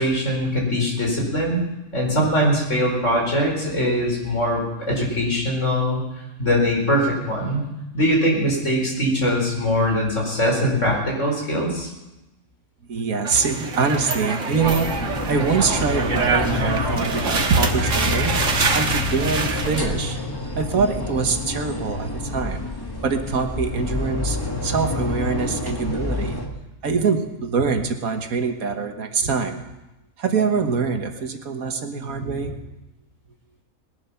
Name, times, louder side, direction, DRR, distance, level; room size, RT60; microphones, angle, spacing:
voice 1, 0.0-1.6 1.9-6.0 6.4-7.6 7.9-11.9, equal, 55° left, -1 dB, 4.9 m, -22 dB
voice 2, 12.9-18.3 18.7-22.7 23.0-26.4 26.8-29.6 30.2-32.6, right 5 dB, 80° right, 6 dB, 1.8 m, -24 dB
sound 1, 13.2-19.8, right 4 dB, 60° right, 1.7 m, -25 dB
sound 2, 14.6-26.5, left 2 dB, 15° left, 1.7 m, -28 dB
20.0 x 12.0 x 5.7 m, 0.98 s
omnidirectional pair, 1.5 m